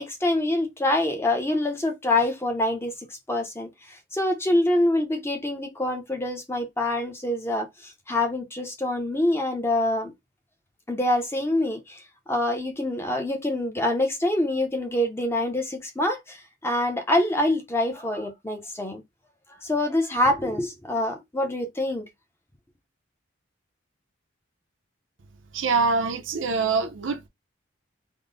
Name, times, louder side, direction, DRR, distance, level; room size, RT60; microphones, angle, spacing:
voice 1, 0.0-2.9 3.3-10.1 10.9-12.0 12.3-19.0 19.6-22.1, left 1 dB, 15° left, 0.7 m, -25 dB
voice 2, 25.5-27.3, right 4 dB, 75° right, 0.6 m, -24 dB
3.6 x 2.1 x 3.8 m
head